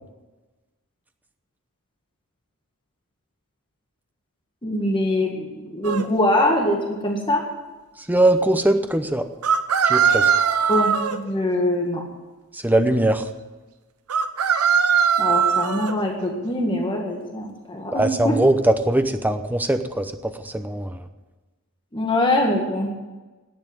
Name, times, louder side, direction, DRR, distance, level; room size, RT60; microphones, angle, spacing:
voice 1, 4.6-7.4 10.7-12.0 15.2-18.4 21.9-22.9, left 1 dB, 20° left, 0 dB, 1.8 m, -23 dB
sound 1, 5.8-6.0 9.4-11.2 14.1-15.9, right 7 dB, 90° right, 0.8 m, -20 dB
voice 2, 8.1-9.3 9.8-10.3 12.5-13.3 17.9-21.1, right 1 dB, 10° right, 8 dB, 0.7 m, -21 dB
11.0 x 8.8 x 9.6 m, 1.2 s
head